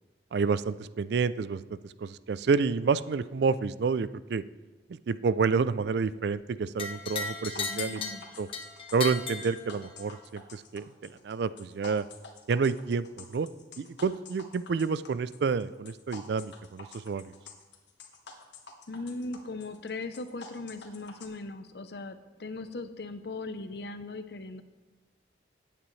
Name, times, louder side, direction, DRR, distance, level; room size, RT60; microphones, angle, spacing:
voice 1, 0.3-4.4 5.1-8.0 8.4-8.5 8.9-10.9 11.2-12.0 12.5-13.5 13.8-17.3, right 5 dB, 65° right, 15 dB, 0.4 m, -29 dB
sound 1, 6.8-10.2, left 5 dB, 30° left, 1.1 m, -36 dB
sound 2, 7.5-21.3, left 4 dB, 80° left, 1.4 m, -49 dB
voice 2, 7.7-8.2 18.9-24.6, left 3 dB, 60° left, 10 dB, 0.7 m, -39 dB
15.0 x 9.0 x 3.2 m, 1.2 s
head